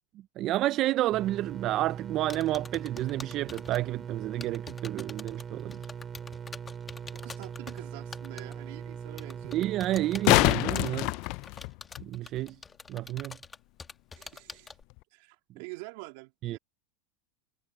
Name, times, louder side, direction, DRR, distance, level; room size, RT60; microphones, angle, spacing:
voice 1, 0.4-5.8 9.5-11.1 12.0-12.6 12.9-13.4 16.4-16.6, right 15 dB, 40° right, 0.4 m, -30 dB
sound 1, 1.1-10.5, right 7 dB, 20° right, 4.8 m, -41 dB
sound 2, 2.3-3.8 4.3-7.8 8.1-8.5 9.2-14.8, left 4 dB, 15° left, 1.8 m, -45 dB
sound 3, 7.0-7.1 9.9-12.0 14.9-15.0, left 24 dB, 50° left, 0.4 m, -25 dB
voice 2, 7.1-9.7 14.2-14.7 15.1-16.6, right 26 dB, 60° right, 2.9 m, -46 dB
supercardioid pair, 145°, 0 cm